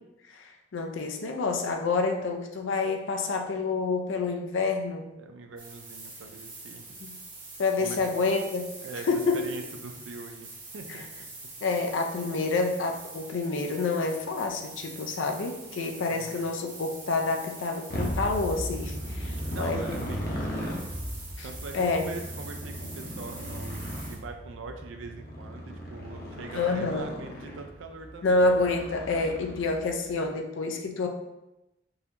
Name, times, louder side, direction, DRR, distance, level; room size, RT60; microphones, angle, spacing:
voice 1, 0.3-5.0 7.0-7.2 7.6-8.7 9.1-9.5 11.6-20.0 21.4-21.5 21.7-22.1 26.5-27.1 28.2-31.1, left 3 dB, 85° left, 3 dB, 0.5 m, -28 dB
voice 2, 5.0-7.0 7.8-8.0 8.8-9.1 9.3-11.2 11.7-11.8 16.1-16.5 19.2-20.9 21.3-23.8 24.1-28.5, right 3 dB, 90° right, 4 dB, 0.4 m, -42 dB
sound 1, 5.6-24.2, right 3 dB, 45° right, 0.9 m, -45 dB
Motorcycle, 17.9-30.0, equal, 50° left, 0.8 m, -36 dB
4.0 x 2.8 x 2.6 m, 0.93 s
head